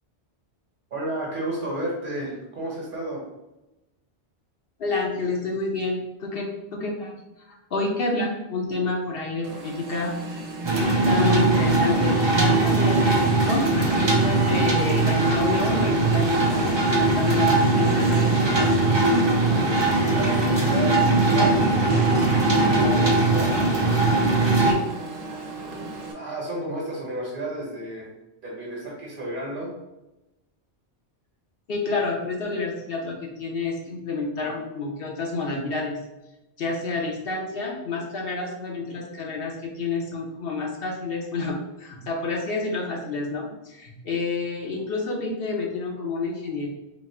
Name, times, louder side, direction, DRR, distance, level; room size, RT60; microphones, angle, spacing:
voice 1, 0.9-3.2 20.1-20.9 21.3-22.2 22.7-23.5 26.1-28.1 28.4-29.7, right 1 dB, 50° right, -3 dB, 1.4 m, -32 dB
voice 2, 4.8-10.1 10.7-18.7 24.7-24.8 31.7-36.0 36.6-46.7, left 3 dB, 60° left, 0 dB, 0.9 m, -29 dB
Alarm, 9.4-26.1, right 2 dB, 80° right, 1.1 m, -35 dB
sound 1, 10.6-24.7, right 2 dB, 30° right, 0.5 m, -20 dB
4.1 x 2.1 x 4.2 m, 0.95 s
omnidirectional pair, 1.2 m